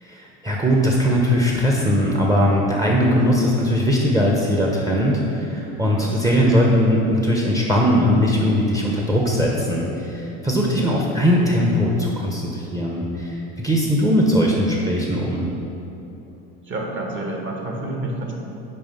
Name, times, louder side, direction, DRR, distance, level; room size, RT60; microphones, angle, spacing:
voice 1, 0.0-15.4, equal, 15° right, -2 dB, 0.8 m, -20 dB
voice 2, 5.8-6.4 10.7-11.0 15.4-15.5 16.6-18.3, right 2 dB, 40° right, 0 dB, 1.5 m, -30 dB
5.6 x 4.8 x 5.4 m, 2.9 s
supercardioid pair, 90°, 30 cm